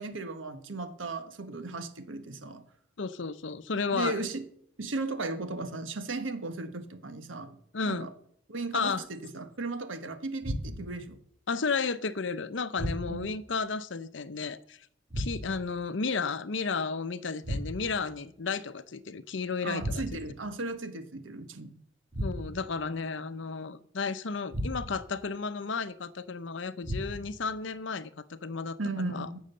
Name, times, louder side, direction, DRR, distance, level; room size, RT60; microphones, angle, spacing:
voice 1, 0.0-2.6 3.9-4.4 4.8-7.6 7.8-8.1 8.5-11.2 13.1-13.3 19.6-21.7 28.8-29.4, right 3 dB, 80° right, 1.3 m, -36 dB
voice 2, 3.0-4.2 7.7-8.1 8.7-9.0 11.5-14.9 15.2-20.2 22.2-29.3, left 4 dB, 70° left, 0.7 m, -33 dB
sound 1, 10.4-11.1 12.8-13.4 15.1-15.7 17.4-18.1 19.8-20.4 22.1-22.8 24.5-25.1 26.8-27.5, equal, 35° right, 2.2 m, -35 dB
16.0 x 6.4 x 6.7 m
head